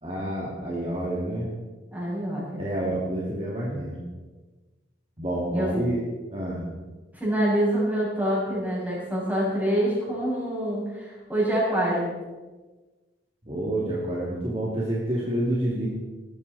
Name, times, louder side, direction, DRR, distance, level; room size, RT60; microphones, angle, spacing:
voice 1, 0.0-1.5 2.6-4.0 5.2-6.0 6.3-6.6 13.5-15.9, right 1 dB, 30° right, -5 dB, 2.6 m, -28 dB
voice 2, 1.9-2.6 5.5-5.7 7.1-12.1, right 1 dB, 10° right, -7 dB, 6.7 m, -26 dB
19.5 x 13.5 x 4.2 m, 1.3 s
head